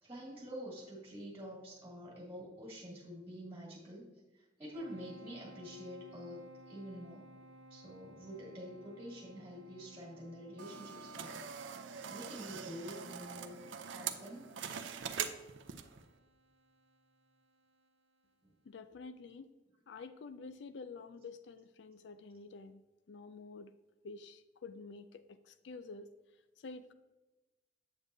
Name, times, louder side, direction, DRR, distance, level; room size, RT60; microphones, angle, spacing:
voice 1, 0.0-4.1 4.3-7.3 7.7-11.4 12.0-13.6 13.9-14.5 19.9-20.0, equal, 15° right, -5 dB, 2.1 m, -47 dB
sound 1, 4.7-17.9, right 1 dB, 65° right, 0.8 m, -59 dB
sound 2, 10.6-16.0, right 7 dB, 85° right, 0.5 m, -43 dB
voice 2, 18.6-19.5 19.9-23.7 24.0-26.1 26.6-26.9, left 4 dB, 75° left, 12 dB, 0.4 m, -49 dB
7.9 x 7.1 x 2.7 m, 1.1 s
head